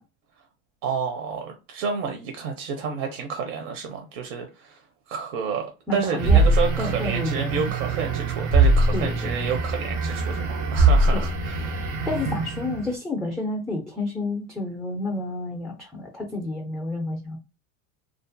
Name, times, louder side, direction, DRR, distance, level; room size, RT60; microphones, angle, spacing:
voice 1, 0.8-4.8 5.1-12.1, right 6 dB, 55° right, 0.6 m, -30 dB
voice 2, 5.9-6.5 6.8-7.7 8.9-9.3 11.1-11.3 12.1-17.4, left 2 dB, ahead, 0.3 m, -30 dB
sound 1, 6.2-12.9, right 3 dB, 85° right, 0.8 m, -22 dB
2.4 x 2.4 x 2.5 m
supercardioid pair, 115°, 37 cm